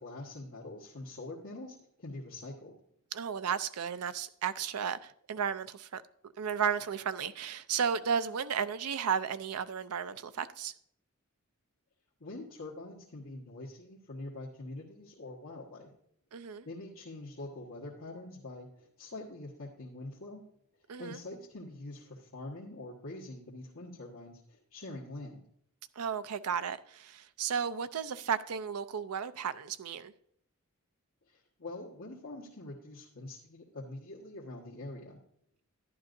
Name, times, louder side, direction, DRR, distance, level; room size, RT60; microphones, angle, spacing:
voice 1, 0.0-2.8 12.2-15.9 16.4-20.4 21.0-25.4 31.3-35.2, left 2 dB, 70° left, 1.5 m, -45 dB
voice 2, 3.1-6.0 6.4-10.7 16.3-16.7 20.9-21.2 26.0-30.1, right 7 dB, 90° right, 0.5 m, -34 dB
11.5 x 10.5 x 2.6 m
head